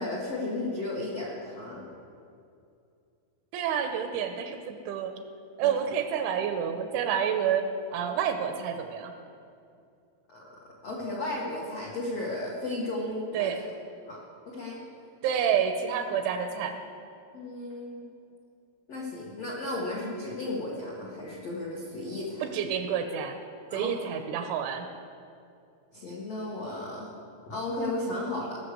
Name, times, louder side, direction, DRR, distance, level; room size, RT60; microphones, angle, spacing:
voice 1, 0.0-1.9 5.6-5.7 10.3-10.4 10.8-13.5 14.0-14.2 14.5-14.8 17.3-18.1 18.9-22.4 23.7-23.9 25.9-27.1 27.5-28.6, left 2 dB, 70° left, -5 dB, 1.5 m, -34 dB
voice 2, 3.5-5.2 5.6-7.7 7.9-9.1 13.3-13.6 15.2-16.8 22.4-23.4 23.7-24.9, right 8 dB, 85° right, 6 dB, 2.9 m, -29 dB
18.5 x 6.6 x 6.8 m, 2.5 s
omnidirectional pair, 5.7 m